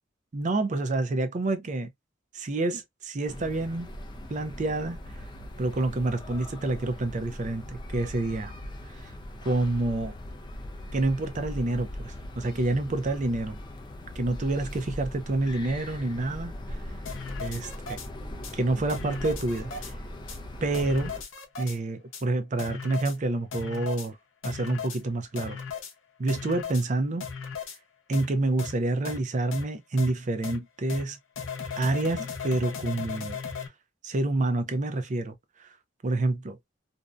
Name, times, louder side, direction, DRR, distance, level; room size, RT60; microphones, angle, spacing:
voice 1, 0.3-1.9 2.3-3.9 4.3-5.0 5.6-8.5 8.9-9.1 9.4-10.1 10.9-13.6 14.2-16.8 17.4-18.0 18.5-19.9 20.6-21.1 21.6-24.2 24.4-25.6 26.2-27.2 28.1-31.2 31.8-33.4 34.0-35.7 36.0-36.6, right 2 dB, 40° right, 0.5 m, -28 dB
sound 1, 3.3-21.2, left 1 dB, 25° left, 0.4 m, -40 dB
sound 2, 17.1-18.1 18.4-18.5 18.9-19.9 20.3-20.4 20.7-21.8 22.1-22.2 22.6-23.2 23.5-24.1 24.4-25.0 25.4-25.9 26.3-26.8 27.2-27.8 28.1-28.3 28.6-28.7 29.1-29.2 29.5-29.6 30.0-30.1 30.4-30.6 30.9-31.0 31.4-33.7, left 6 dB, 80° left, 0.7 m, -36 dB
2.6 x 2.2 x 2.3 m
head